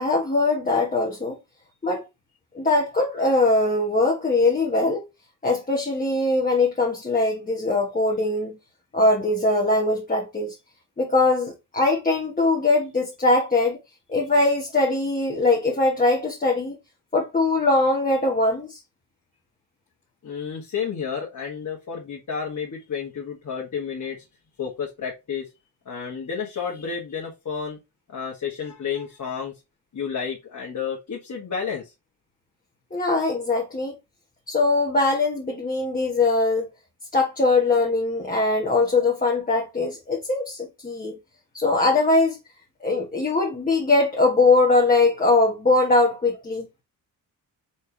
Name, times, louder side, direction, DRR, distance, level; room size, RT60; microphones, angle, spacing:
voice 1, 0.0-1.4 1.8-2.0 2.5-5.0 5.4-8.6 8.9-10.5 11.0-13.8 14.1-16.8 17.1-18.8 32.9-33.9 34.5-36.7 37.1-41.1 41.5-42.4 42.8-46.7, left 2 dB, 20° left, 1.3 m, -21 dB
voice 2, 20.2-24.2 24.6-25.5 25.8-27.8 28.1-29.5 29.9-31.9, left 6 dB, 45° left, 1.5 m, -31 dB
4.4 x 3.4 x 3.3 m
cardioid pair, 70°, 41 cm